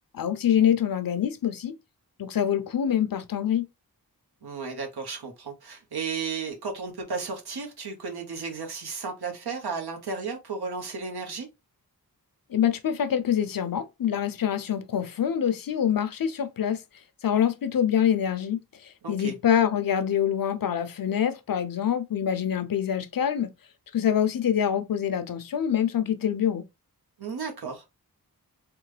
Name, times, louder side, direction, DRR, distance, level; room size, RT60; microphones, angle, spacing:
voice 1, 0.1-1.8 2.2-3.7 12.5-16.8 17.2-23.5 23.9-26.7, left 9 dB, 65° left, 0.5 m, -25 dB
voice 2, 4.4-11.5 19.0-19.4 27.2-27.8, right 5 dB, 80° right, 1.0 m, -34 dB
3.3 x 2.2 x 3.2 m
wide cardioid pair, 90°, 38 cm